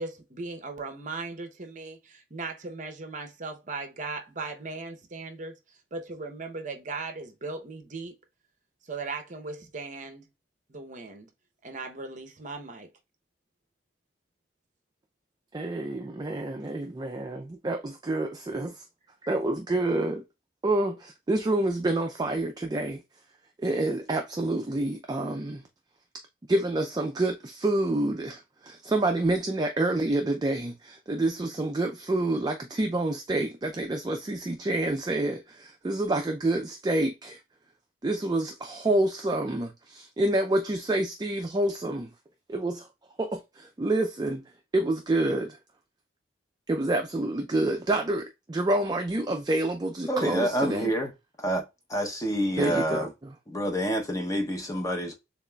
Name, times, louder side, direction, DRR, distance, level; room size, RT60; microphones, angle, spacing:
voice 1, 0.0-5.6 5.9-8.2 8.9-10.3 10.7-11.3 11.6-12.9, right 3 dB, 40° right, 0.7 m, -38 dB
voice 2, 15.5-18.8 19.2-20.2 20.6-23.0 23.6-25.6 26.5-37.4 38.0-42.1 42.5-42.9 43.2-44.4 44.7-45.6 46.7-50.9 52.6-53.1, right 2 dB, 20° right, 0.3 m, -28 dB
voice 3, 50.1-51.1 51.4-51.6 51.9-53.1 53.5-55.1, equal, 15° left, 0.7 m, -28 dB
6.8 x 2.4 x 2.2 m
head